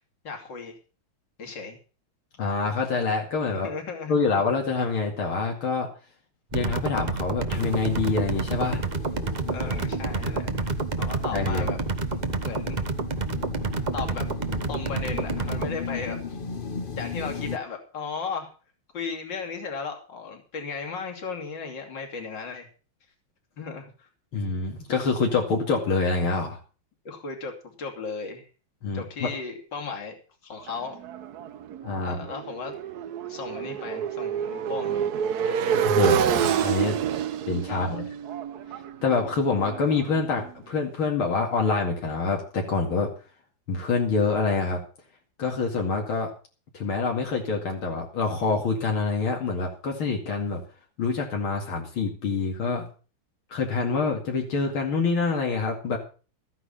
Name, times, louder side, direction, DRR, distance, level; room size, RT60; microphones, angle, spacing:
voice 1, 0.2-0.8 1.4-1.8 3.6-4.1 9.5-11.8 12.4-12.8 13.9-14.3 14.7-16.4 16.9-18.5 18.9-22.7 23.6-24.1 27.1-28.5 28.9-30.1 30.4-31.0 32.0-32.8 33.3-35.1 35.5-35.8 37.7-38.0, left 5 dB, 60° left, 2 dB, 3.4 m, -35 dB
voice 2, 2.4-3.7 4.1-5.9 6.5-8.8 11.3-11.7 24.3-26.6 28.8-29.3 31.8-32.2 35.8-37.0 37.5-38.0 39.0-43.1 43.7-44.8 45.4-46.3 46.7-50.6 51.0-52.9 53.5-56.0, left 4 dB, 80° left, 1 dB, 3.2 m, -26 dB
sound 1, 6.5-15.7, right 4 dB, 30° right, 0.8 m, -29 dB
sound 2, 7.5-17.6, left 5 dB, 35° left, 0.9 m, -36 dB
Motorcycle, 30.7-40.5, right 9 dB, 60° right, 1.1 m, -28 dB
14.0 x 9.9 x 5.7 m, 0.36 s
omnidirectional pair, 2.2 m